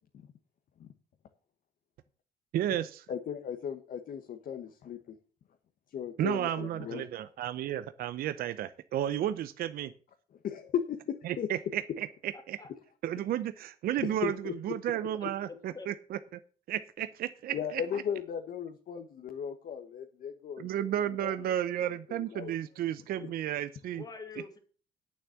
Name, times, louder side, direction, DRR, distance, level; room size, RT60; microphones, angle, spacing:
voice 1, 2.5-3.1 6.2-9.9 11.2-12.6 13.0-14.3 14.6-16.4 16.7-18.0 20.6-24.0, right 11 dB, 60° right, 13 dB, 0.6 m, -33 dB
voice 2, 3.1-5.1 5.9-7.1 10.4-11.5 14.0-14.5 17.5-21.5 21.8-22.5 23.2-23.3, left 8 dB, 55° left, 5 dB, 1.3 m, -36 dB
voice 3, 12.3-12.7 15.4-15.9 23.9-24.6, left 4 dB, 20° left, 5 dB, 2.5 m, -45 dB
8.9 x 7.2 x 7.0 m, 0.41 s
cardioid pair, 110°, 17 cm